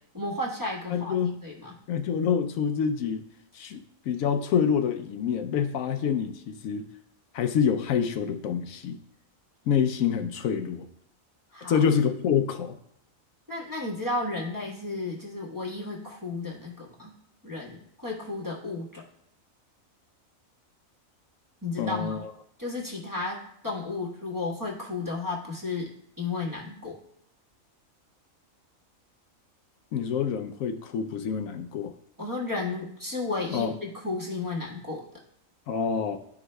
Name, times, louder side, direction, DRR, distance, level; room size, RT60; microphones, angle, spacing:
voice 1, 0.1-1.7 11.5-11.8 13.5-17.1 17.4-19.0 21.6-22.2 22.6-25.9 26.2-27.0 32.2-35.0, left 3 dB, 15° right, -3 dB, 1.2 m, -33 dB
voice 2, 0.9-1.4 1.9-3.3 3.5-6.9 7.3-9.0 9.7-10.9 11.7-12.8 21.8-22.3 29.9-31.9 33.5-33.7 35.7-36.2, left 7 dB, 80° left, 7 dB, 1.0 m, -27 dB
12.5 x 4.7 x 2.2 m, 0.75 s
omnidirectional pair, 1.4 m